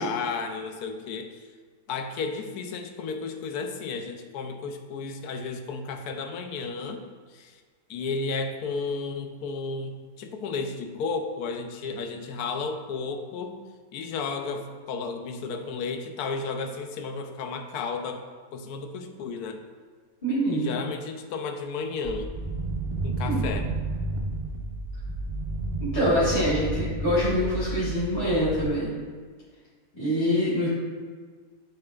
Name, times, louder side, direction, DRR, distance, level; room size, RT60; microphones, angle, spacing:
voice 1, 0.0-1.5 1.9-7.6 7.9-13.6 13.9-18.2 18.5-19.6 20.5-22.3 23.0-23.7, left 4 dB, 85° left, 6 dB, 1.1 m, -33 dB
voice 2, 20.2-20.7 23.3-23.4 25.9-28.9 29.9-30.7, equal, 25° left, -12 dB, 2.0 m, -25 dB
sound 1, 22.0-28.7, right 2 dB, 45° right, 0.3 m, -31 dB
10.5 x 4.3 x 2.4 m, 1.6 s
omnidirectional pair, 1.6 m